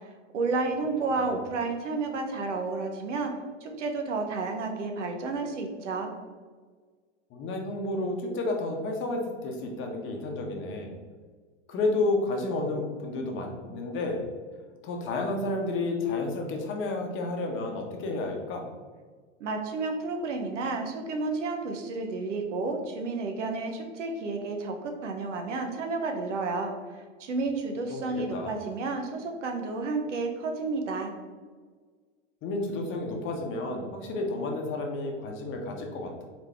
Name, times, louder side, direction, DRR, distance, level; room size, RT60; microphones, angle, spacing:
voice 1, 0.3-3.3 3.6-6.1 19.4-31.1, right 3 dB, 80° right, 4 dB, 0.9 m, -31 dB
voice 2, 7.3-10.9 11.7-14.3 14.8-18.7 27.9-28.5 32.4-36.2, left 2 dB, 35° left, 2 dB, 0.9 m, -31 dB
4.0 x 3.6 x 3.3 m, 1.5 s
hypercardioid pair, 110°, 36 cm